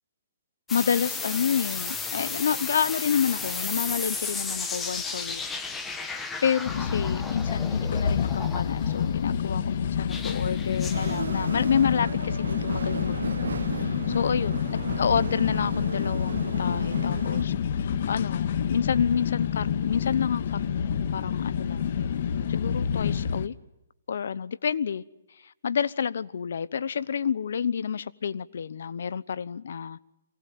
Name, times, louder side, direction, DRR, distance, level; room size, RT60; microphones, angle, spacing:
voice 1, 0.7-5.4 6.0-13.4 13.6-21.9 22.5-23.5 24.1-25.0 25.4-30.0, left 7 dB, 70° left, 1.0 m, -29 dB
sound 1, 0.7-9.1 10.1-11.2, left 4 dB, 10° left, 1.8 m, -34 dB
sound 2, 6.6-23.5, left 8 dB, 55° left, 1.7 m, -28 dB
sound 3, 10.9-17.4, right 5 dB, 80° right, 1.1 m, -35 dB
24.0 x 18.5 x 9.4 m
hypercardioid pair, 150°, 0 cm